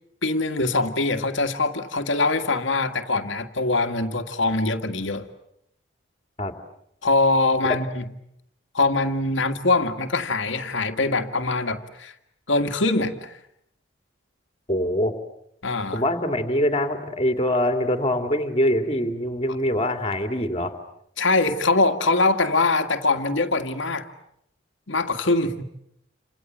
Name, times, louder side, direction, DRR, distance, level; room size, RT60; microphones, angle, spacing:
voice 1, 0.2-5.3 7.0-8.0 8.7-12.1 12.5-13.4 15.6-16.0 21.2-24.1 24.9-25.6, left 3 dB, 75° left, 8 dB, 1.9 m, -23 dB
voice 2, 14.7-15.1 15.9-20.7, left 1 dB, 30° left, 6 dB, 2.8 m, -24 dB
29.0 x 26.5 x 7.5 m, 0.75 s
head